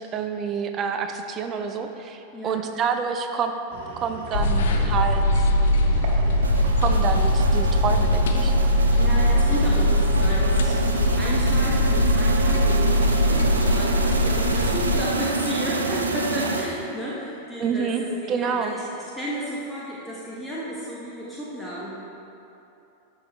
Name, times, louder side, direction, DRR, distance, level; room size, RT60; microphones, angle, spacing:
voice 1, 0.0-3.5 4.0-5.5 6.8-8.5 17.6-18.7, right 6 dB, 30° right, 6 dB, 0.6 m, -28 dB
voice 2, 2.3-2.7 8.9-22.0, equal, ahead, -8 dB, 1.1 m, -33 dB
sound 1, 3.7-16.6, right 3 dB, 50° right, 0.9 m, -38 dB
sound 2, 4.3-15.0, left 1 dB, 60° left, 0.7 m, -21 dB
sound 3, 6.4-17.1, right 3 dB, 75° right, 0.5 m, -28 dB
12.5 x 4.9 x 3.2 m, 3.0 s
figure-of-eight pair, 90°, 0 cm